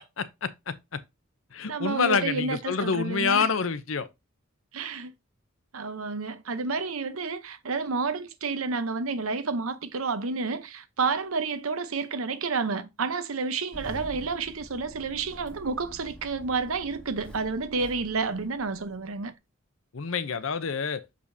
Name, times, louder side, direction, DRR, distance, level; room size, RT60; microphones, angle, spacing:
voice 1, 0.2-1.0 1.5-4.1 19.9-21.0, left 5 dB, 70° left, 0.7 m, -27 dB
voice 2, 1.7-3.5 4.7-5.1 5.7-19.3, right 4 dB, 85° right, 0.9 m, -30 dB
Engine starting, 13.7-19.3, right 1 dB, 5° left, 1.2 m, -46 dB
6.8 x 5.0 x 2.7 m
head